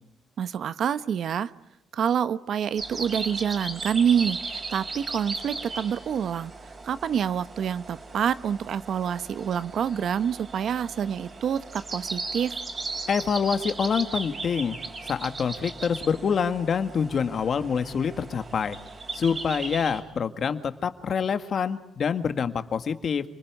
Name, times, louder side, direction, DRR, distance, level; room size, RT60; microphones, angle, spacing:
voice 1, 0.4-1.5 1.9-6.5 6.8-12.5, right 8 dB, 65° right, 14 dB, 1.0 m, -27 dB
sound 1, 2.8-20.0, right 3 dB, 40° right, 6.1 m, -37 dB
voice 2, 13.1-14.8 15.0-18.8 19.1-23.2, left 6 dB, 50° left, 9 dB, 1.9 m, -26 dB
29.0 x 20.5 x 9.6 m, 0.84 s
cardioid pair, 90°, 0 cm